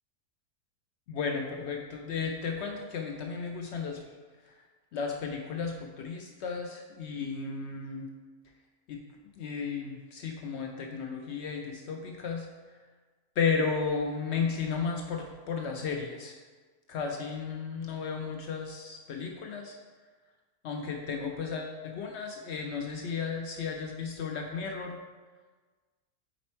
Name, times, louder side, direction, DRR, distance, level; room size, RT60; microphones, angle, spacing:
voice 1, 1.1-4.0 4.9-8.1 8.9-9.0 9.4-12.5 13.4-16.4 16.9-19.8 20.6-25.0, left 5 dB, 85° left, 2 dB, 0.6 m, -34 dB
5.1 x 4.2 x 4.3 m, 1.4 s
omnidirectional pair, 1.7 m